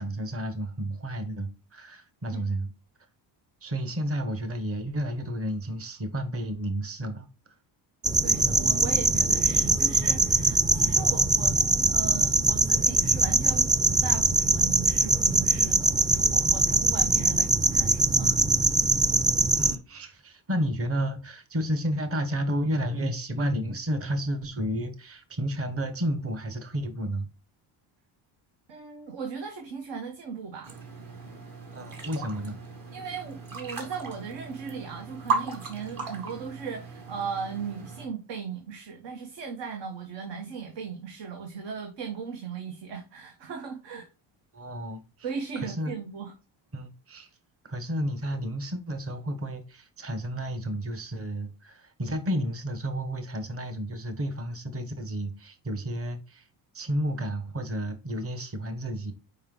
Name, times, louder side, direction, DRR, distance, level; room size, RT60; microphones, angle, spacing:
voice 1, 0.0-2.7 3.6-7.3 19.6-27.3 31.7-32.6 44.5-45.0 45.5-45.9 46.7-47.3 47.6-56.5 56.7-59.1, equal, 30° right, 1.2 m, -31 dB
sound 1, 8.0-19.8, right 2 dB, 10° right, 0.4 m, -22 dB
voice 2, 8.2-18.4 18.8-18.9 28.7-30.8 32.9-44.1 45.2-46.3, right 6 dB, 70° right, 1.3 m, -38 dB
sound 2, 30.6-38.1, right 4 dB, 50° right, 1.9 m, -36 dB
5.4 x 4.7 x 3.8 m
cardioid pair, 105°, 44 cm